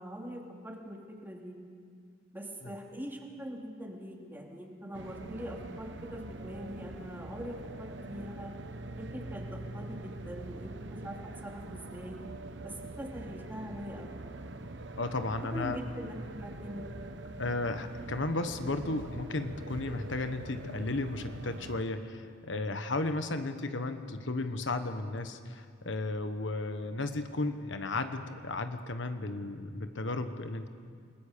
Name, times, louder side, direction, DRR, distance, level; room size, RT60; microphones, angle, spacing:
voice 1, 0.0-1.6 2.3-8.5 9.0-12.2 12.6-14.1 15.5-16.9, equal, 10° right, 0 dB, 2.5 m, -42 dB
sound 1, 4.9-21.8, right 2 dB, 65° right, 1.1 m, -44 dB
voice 2, 15.0-15.8 17.4-30.7, left 2 dB, 75° left, 8 dB, 1.2 m, -34 dB
28.0 x 20.0 x 6.7 m, 2.1 s
head